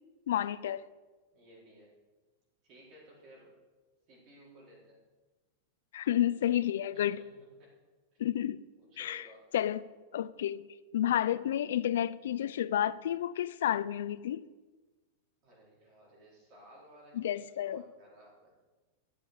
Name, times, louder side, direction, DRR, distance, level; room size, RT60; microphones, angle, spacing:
voice 1, 0.3-0.8 5.9-7.2 8.2-8.6 9.0-9.2 9.5-9.8 10.1-10.7 10.9-14.5 17.2-17.8, left 11 dB, 80° left, 0.5 m, -30 dB
voice 2, 1.3-2.0 2.6-3.6 4.1-5.0 6.9-7.7 8.1-8.2 8.8-9.5 15.4-18.6, equal, 35° right, 4.5 m, -57 dB
13.0 x 7.3 x 6.7 m
supercardioid pair, 165°, 0 cm